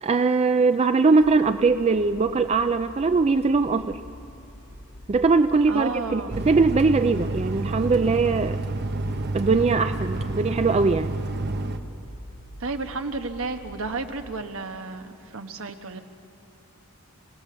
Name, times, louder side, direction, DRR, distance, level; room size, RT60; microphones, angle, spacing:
voice 1, 0.0-4.0 5.1-8.6 9.3-11.1, right 4 dB, 30° right, 10 dB, 0.4 m, -21 dB
sound 1, 1.2-14.4, equal, 70° left, 5.0 m, -45 dB
voice 2, 5.7-6.5 12.6-16.0, right 3 dB, 70° right, 6 dB, 1.2 m, -32 dB
sound 2, 6.3-11.8, right 2 dB, 50° right, 0.9 m, -29 dB
25.0 x 17.5 x 6.8 m, 2.9 s
head